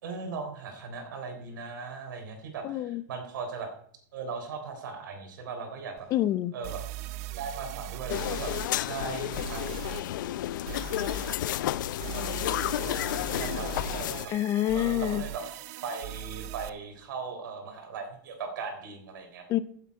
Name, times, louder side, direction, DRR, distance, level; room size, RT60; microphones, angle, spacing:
voice 1, 0.0-3.7 4.1-6.1 6.5-6.8 7.4-8.5 8.8-9.7 12.8-14.3 14.7-15.4 15.8-19.5, right 5 dB, 85° right, 4 dB, 3.6 m, -38 dB
voice 2, 2.6-3.0 6.1-6.5 14.3-15.2 19.5-19.6, left 13 dB, 35° left, 17 dB, 0.6 m, -27 dB
sound 1, 6.0-6.1 6.6-8.7 9.3-10.0 10.7-11.4 12.0-16.7, right 16 dB, 55° right, 0.7 m, -39 dB
sound 2, 8.1-14.3, left 13 dB, 80° left, 0.5 m, -31 dB
15.5 x 8.3 x 4.7 m, 0.63 s
supercardioid pair, 145°, 10 cm